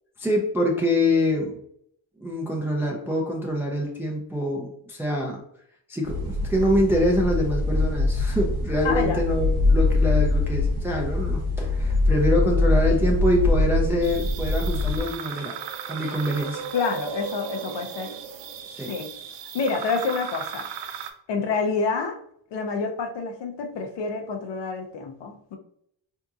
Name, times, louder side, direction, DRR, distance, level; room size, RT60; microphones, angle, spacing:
voice 1, 0.2-1.6 2.2-5.4 5.9-15.5 15.9-16.6 18.7-18.9, left 1 dB, 5° right, -1 dB, 0.4 m, -25 dB
sound 1, 6.0-15.0, left 2 dB, 55° right, 0.8 m, -23 dB
voice 2, 8.8-9.2 16.7-18.1 18.9-19.1 19.5-20.7 21.3-22.2 22.5-25.6, left 4 dB, 70° left, 3 dB, 0.7 m, -28 dB
sound 2, 14.0-21.1, right 7 dB, 75° right, 0.5 m, -36 dB
3.5 x 2.8 x 2.4 m, 0.69 s
cardioid pair, 115°, 45 cm